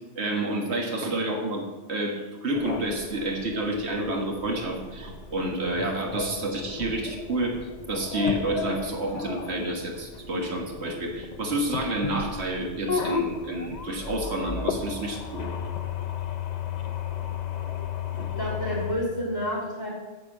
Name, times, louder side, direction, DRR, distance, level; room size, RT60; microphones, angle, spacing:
voice 1, 0.0-1.6 1.9-7.6 7.9-15.5, right 1 dB, 65° right, 1 dB, 1.8 m, -29 dB
sound 1, 2.5-18.9, left 6 dB, 45° left, 0.7 m, -34 dB
voice 2, 18.4-19.9, equal, 20° left, -8 dB, 3.8 m, -29 dB
9.8 x 4.8 x 7.8 m, 1.2 s
omnidirectional pair, 1.2 m